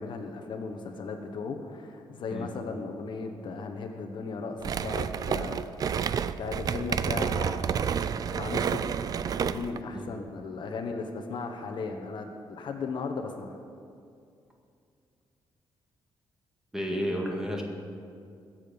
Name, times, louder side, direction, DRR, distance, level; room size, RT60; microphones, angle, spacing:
voice 1, 0.0-5.6 6.1-7.7 8.3-9.0 9.4-13.6, left 4 dB, 60° left, 5 dB, 1.1 m, -36 dB
sound 1, 4.6-9.8, right 7 dB, 45° right, 0.4 m, -30 dB
voice 2, 16.7-17.6, equal, 5° right, 0 dB, 1.8 m, -31 dB
21.5 x 7.6 x 5.3 m, 2.4 s
wide cardioid pair, 150°, 9 cm